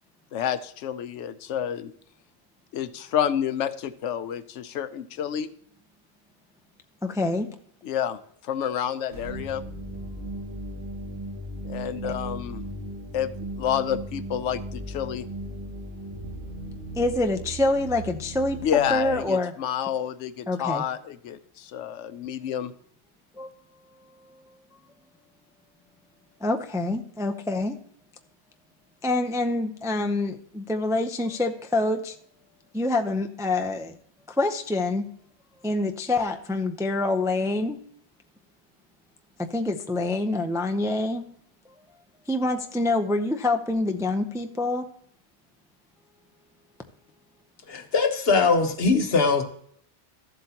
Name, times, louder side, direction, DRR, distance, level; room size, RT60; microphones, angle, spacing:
voice 1, 0.3-1.9 2.7-5.5 7.8-9.6 11.6-12.6 13.1-15.3 18.6-22.7, left 9 dB, 90° left, 12 dB, 0.9 m, -29 dB
voice 2, 7.0-7.5 16.9-18.6 18.9-19.5 20.5-20.8 23.4-23.5 26.4-27.8 29.0-32.2 32.7-34.0 34.3-35.0 35.6-37.8 39.4-41.2 41.8-41.9 42.3-44.9, left 2 dB, 5° right, 4 dB, 0.4 m, -26 dB
sound 1, 9.1-19.2, right 1 dB, 65° right, 3.1 m, -37 dB
voice 3, 47.7-49.4, left 4 dB, 60° left, 6 dB, 1.3 m, -21 dB
13.5 x 7.8 x 2.8 m, 0.65 s
omnidirectional pair, 1.2 m